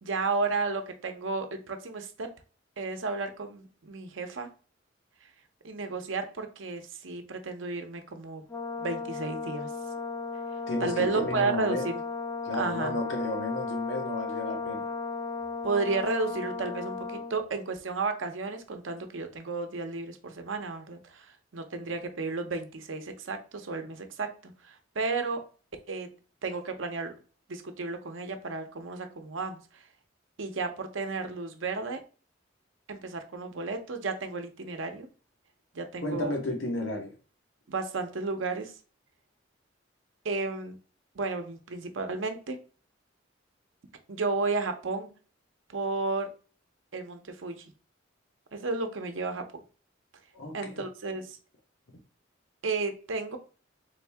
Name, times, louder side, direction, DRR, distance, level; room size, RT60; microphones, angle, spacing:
voice 1, 0.0-2.3 2.8-4.5 5.6-8.4 8.8-9.7 10.8-12.0 12.6-13.0 15.6-25.4 25.9-26.1 26.4-27.1 27.5-29.8 30.4-32.0 32.9-35.1 35.7-36.3 37.7-38.7 40.2-40.8 41.1-42.6 44.1-45.1 45.7-46.3 46.9-47.6 48.5-49.5 50.5-51.4 52.6-53.4, right 3 dB, 75° right, 0.7 m, -33 dB
Brass instrument, 8.5-17.4, left 4 dB, 15° left, 0.6 m, -35 dB
voice 2, 10.7-11.9 12.4-14.8 36.0-37.1 50.3-50.8, left 2 dB, 75° left, 1.1 m, -33 dB
3.9 x 2.7 x 3.4 m
head